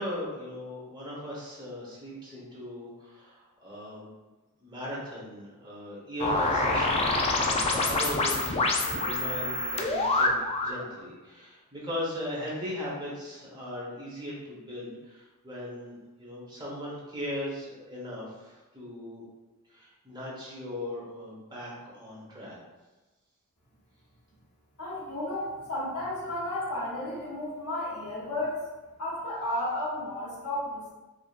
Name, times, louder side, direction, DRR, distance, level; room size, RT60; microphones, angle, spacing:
voice 1, 0.0-4.1 4.6-19.3 19.7-22.6, left 1 dB, 20° right, -6 dB, 1.0 m, -38 dB
sound 1, 6.2-10.8, left 2 dB, 25° left, 0.3 m, -26 dB
voice 2, 24.8-28.6 29.0-30.9, left 1 dB, 75° left, -6 dB, 1.3 m, -33 dB
4.8 x 2.6 x 2.4 m, 1.2 s
head